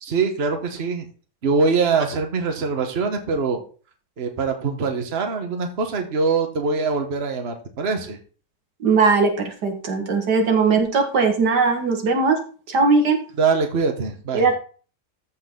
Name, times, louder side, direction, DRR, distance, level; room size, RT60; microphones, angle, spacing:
voice 1, 0.0-1.1 1.4-3.6 4.2-8.2 13.4-14.5, right 4 dB, 40° right, 4 dB, 1.5 m, -23 dB
voice 2, 8.8-12.4 12.7-13.2 14.3-14.6, right 4 dB, 85° right, 4 dB, 2.3 m, -19 dB
14.0 x 4.8 x 3.8 m, 0.38 s
omnidirectional pair, 1.7 m